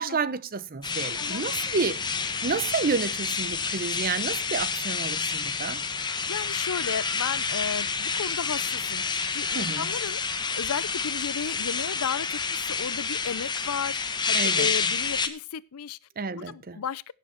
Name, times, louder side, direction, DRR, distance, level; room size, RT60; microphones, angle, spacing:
voice 1, 0.0-2.2 2.4-5.8 9.5-9.9 14.3-14.7 16.2-16.8, right 4 dB, 40° right, 0.7 m, -30 dB
sound 1, 0.8-15.3, left 5 dB, 20° left, 1.0 m, -29 dB
sound 2, 0.8-10.9, equal, 25° right, 2.1 m, -52 dB
voice 2, 6.0-16.0 16.3-17.1, left 7 dB, 85° left, 0.6 m, -34 dB
17.0 x 7.0 x 4.4 m
head